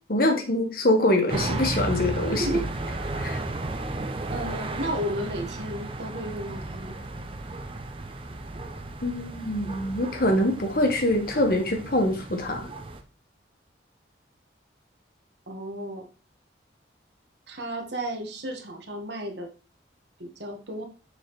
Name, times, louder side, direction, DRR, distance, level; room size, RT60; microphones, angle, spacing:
voice 1, 0.1-2.5 3.2-3.4 9.0-12.7, left 1 dB, 50° left, 5 dB, 1.1 m, -24 dB
sound 1, 1.3-13.0, right 2 dB, 30° right, 0.6 m, -34 dB
voice 2, 2.3-2.7 3.0-3.2 4.3-7.0 15.5-16.1 17.5-19.5 20.2-20.8, right 1 dB, 65° right, 3 dB, 1.3 m, -33 dB
6.6 x 4.7 x 3.0 m, 0.34 s
head